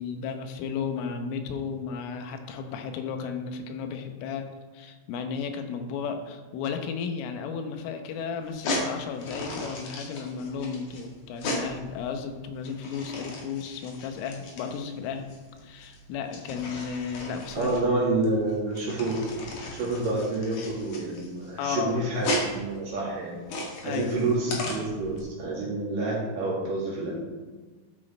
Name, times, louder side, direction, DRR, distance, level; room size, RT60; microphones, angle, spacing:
voice 1, 0.0-4.5 4.7-15.3 15.6-17.7 19.8-19.9 21.6-22.0 23.8-24.2, left 6 dB, 90° left, 6 dB, 3.5 m, -34 dB
sound 1, 8.4-25.2, left 1 dB, 55° left, 2.5 m, -36 dB
voice 2, 17.5-19.2 19.7-23.4 23.8-27.1, right 2 dB, 50° right, -5 dB, 3.3 m, -28 dB
12.5 x 6.3 x 4.4 m, 1.3 s
omnidirectional pair, 5.6 m